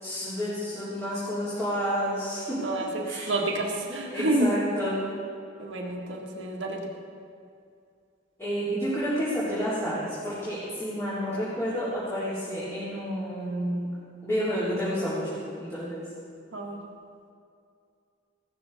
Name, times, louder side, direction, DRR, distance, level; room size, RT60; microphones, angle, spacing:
voice 1, 0.0-2.6 3.0-3.3 4.1-5.0 8.4-13.9 14.2-16.1, equal, 15° left, -12 dB, 3.8 m, -30 dB
voice 2, 2.6-4.6 5.6-6.8 16.5-16.8, right 2 dB, 70° right, -1 dB, 1.9 m, -29 dB
17.5 x 13.5 x 4.3 m, 2.4 s
head